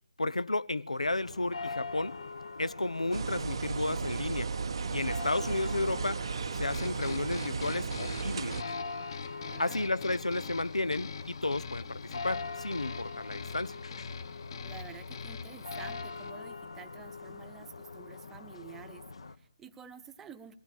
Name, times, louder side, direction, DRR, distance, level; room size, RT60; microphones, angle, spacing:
voice 1, 0.2-2.2 2.6-4.5 4.9-6.2 6.5-8.6 9.6-13.8, left 2 dB, 80° left, 0.9 m, -32 dB
sound 1, 1.0-19.4, left 4 dB, 60° left, 1.5 m, -43 dB
sound 2, 3.1-8.6, right 5 dB, 50° right, 0.8 m, -35 dB
sound 3, 6.7-16.3, left 5 dB, 40° left, 1.6 m, -43 dB
voice 2, 9.4-9.9 14.6-20.5, right 7 dB, 10° right, 1.0 m, -50 dB
22.0 x 16.5 x 8.6 m
figure-of-eight pair, 145°, 3 cm